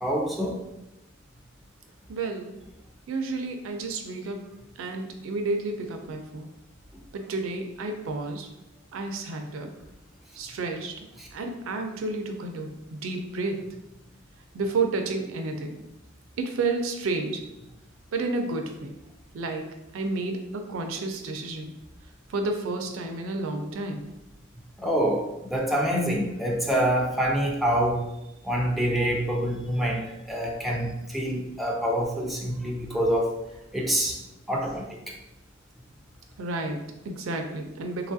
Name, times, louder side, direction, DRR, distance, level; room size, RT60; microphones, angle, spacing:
voice 1, 0.0-0.6 11.2-11.3 24.8-28.0 28.4-33.3 33.7-35.1, equal, ahead, -2 dB, 0.3 m, -26 dB
voice 2, 2.1-2.5 3.1-4.4 4.8-6.5 7.1-8.5 8.9-9.7 10.4-13.6 14.5-15.8 16.4-17.4 18.1-18.9 19.3-21.7 22.3-24.0 36.4-38.1, right 3 dB, 70° right, 4 dB, 0.4 m, -31 dB
2.9 x 2.3 x 2.6 m, 0.90 s
head